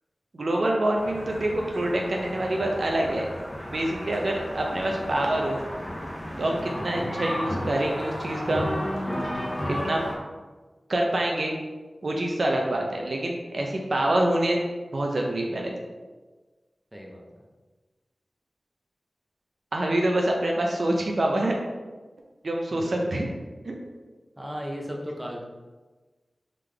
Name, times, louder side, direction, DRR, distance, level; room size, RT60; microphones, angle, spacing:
voice 1, 0.3-3.3 3.7-5.6 6.4-8.7 9.7-10.0 10.9-11.6 12.0-14.6 14.9-15.7 19.7-21.6 22.4-23.3 23.7-23.8, right 1 dB, 60° right, 0 dB, 0.6 m, -26 dB
sound 1, 0.9-10.1, equal, 15° left, 0.9 m, -33 dB
voice 2, 16.9-17.2 22.7-23.1 24.4-25.4, equal, 10° right, -1 dB, 0.7 m, -36 dB
3.7 x 3.4 x 3.3 m, 1.3 s
wide cardioid pair, 85°, 0 cm